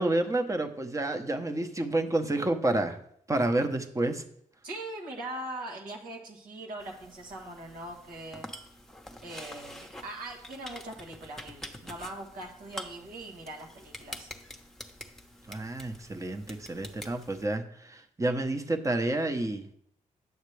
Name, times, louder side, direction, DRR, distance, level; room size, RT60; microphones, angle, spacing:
voice 1, 0.0-3.0 3.3-4.2 15.5-19.6, right 2 dB, 20° right, 6 dB, 1.0 m, -29 dB
voice 2, 4.6-8.5 9.2-14.3, right 1 dB, 85° right, 0 dB, 1.5 m, -41 dB
sound 1, 6.8-17.5, left 1 dB, 5° left, 1.0 m, -46 dB
9.3 x 6.5 x 3.3 m, 0.69 s
cardioid pair, 65°, 14 cm